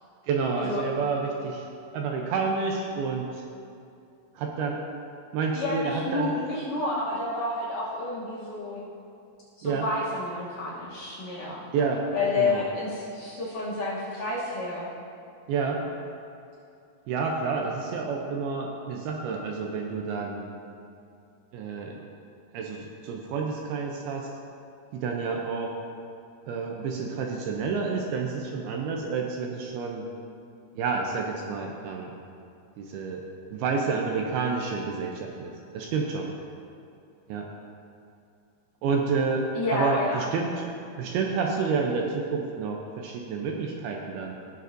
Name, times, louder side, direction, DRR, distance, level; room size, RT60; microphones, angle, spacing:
voice 1, 0.3-1.7 1.9-3.4 4.4-4.8 5.3-6.3 9.6-9.8 11.7-12.1 12.3-12.6 15.5-15.8 17.1-20.5 21.5-22.0 22.5-24.3 24.9-25.7 26.5-30.1 30.8-32.1 32.8-33.2 33.5-36.3 37.3-37.5 38.8-40.7 41.0-44.3, right 4 dB, 80° right, 1 dB, 2.3 m, -29 dB
voice 2, 5.5-8.9 9.6-11.6 12.1-14.9 39.5-40.3, left 2 dB, 65° left, -7 dB, 2.2 m, -30 dB
16.0 x 6.8 x 2.6 m, 2.5 s
omnidirectional pair, 4.9 m